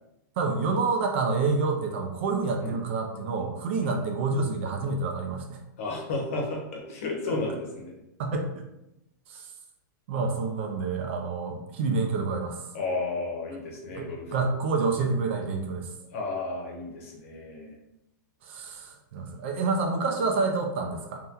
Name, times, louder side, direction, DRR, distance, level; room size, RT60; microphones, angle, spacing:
voice 1, 0.4-5.6 7.3-7.4 8.2-8.6 9.3-9.5 10.1-12.7 13.9-15.9 18.4-21.2, right 4 dB, 40° right, 3 dB, 0.4 m, -28 dB
voice 2, 5.8-8.0 12.7-14.5 16.1-17.8, left 3 dB, 45° left, -1 dB, 0.8 m, -33 dB
2.8 x 2.1 x 3.5 m, 0.89 s
supercardioid pair, 175°, 10 cm